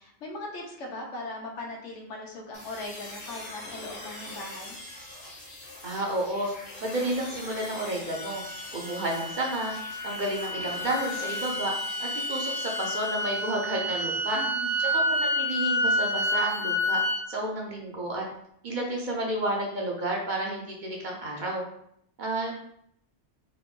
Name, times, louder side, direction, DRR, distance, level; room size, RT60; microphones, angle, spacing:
voice 1, 0.0-4.8 14.3-14.8, left 2 dB, 85° left, 0 dB, 1.3 m, -39 dB
sound 1, 2.5-13.7, left 2 dB, 65° left, 1.5 m, -43 dB
voice 2, 5.8-6.5 6.8-8.4 8.7-9.7 10.0-11.7 12.0-14.4 14.8-17.0 17.3-18.2 18.6-21.6 22.2-22.5, right 1 dB, 45° right, -1 dB, 0.8 m, -31 dB
sound 2, 8.1-17.2, equal, 80° right, 1.6 m, -29 dB
3.8 x 2.6 x 3.6 m, 0.70 s
omnidirectional pair, 1.2 m